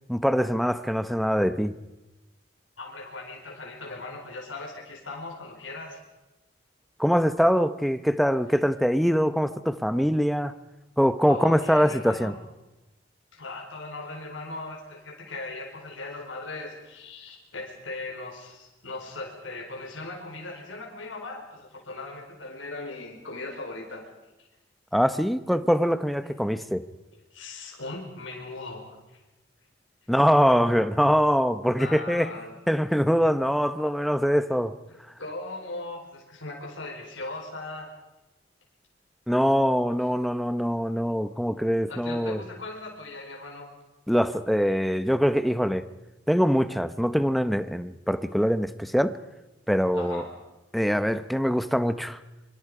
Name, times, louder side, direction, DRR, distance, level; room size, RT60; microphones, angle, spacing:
voice 1, 0.1-1.7 7.0-10.5 11.0-12.3 24.9-26.8 30.1-32.3 32.7-34.7 39.3-42.4 44.1-45.8 46.3-49.1 49.7-50.2 50.7-52.2, equal, ahead, 12 dB, 0.8 m, -23 dB
voice 2, 2.8-6.0 11.3-12.4 13.3-24.1 27.3-29.2 31.8-32.5 34.9-37.9 41.9-43.7 49.9-50.3, left 2 dB, 85° left, 0 dB, 4.5 m, -39 dB
25.5 x 25.0 x 4.9 m, 1.0 s
head